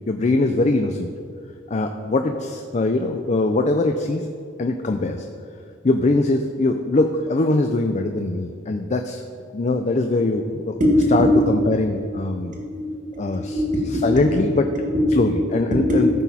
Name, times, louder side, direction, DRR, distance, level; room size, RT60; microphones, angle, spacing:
voice 1, 0.1-1.1 1.7-4.3 4.6-5.3 5.8-9.2 9.5-10.8 11.1-12.6 13.2-13.6 14.0-14.7 15.2-16.1, left 2 dB, 35° left, 5 dB, 0.4 m, -22 dB
voice 2, 10.8-11.4 12.5-12.9 13.1-14.3 14.7-15.4 15.7-16.1, left 1 dB, 40° right, -1 dB, 2.0 m, -21 dB
14.5 x 6.1 x 4.2 m, 2.2 s
head